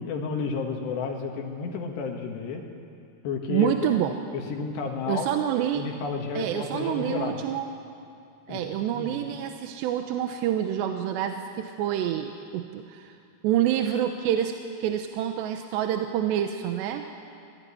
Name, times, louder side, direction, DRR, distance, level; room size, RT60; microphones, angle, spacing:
voice 1, 0.0-2.6 3.2-3.9 4.3-5.3 5.7-7.4 8.5-8.6 9.0-9.2, left 5 dB, 80° left, 1 dB, 3.8 m, -31 dB
voice 2, 3.5-4.1 5.1-5.8 6.4-7.7 8.5-13.1 13.4-14.5 14.8-17.0, right 10 dB, 85° right, 5 dB, 3.1 m, -27 dB
25.5 x 17.0 x 9.9 m, 2.4 s
omnidirectional pair, 5.0 m